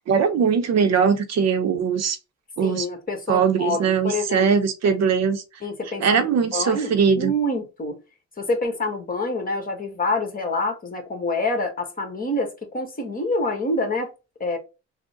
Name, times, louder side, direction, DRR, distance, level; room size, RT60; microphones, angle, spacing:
voice 1, 0.1-2.2 2.6-2.9 3.3-5.4 6.0-7.3, right 6 dB, 60° right, 0.7 m, -20 dB
voice 2, 2.6-4.5 5.6-8.0 8.4-14.1 14.4-14.6, left 2 dB, 30° left, 1.4 m, -27 dB
3.7 x 2.1 x 3.6 m
cardioid pair, 90°, 30 cm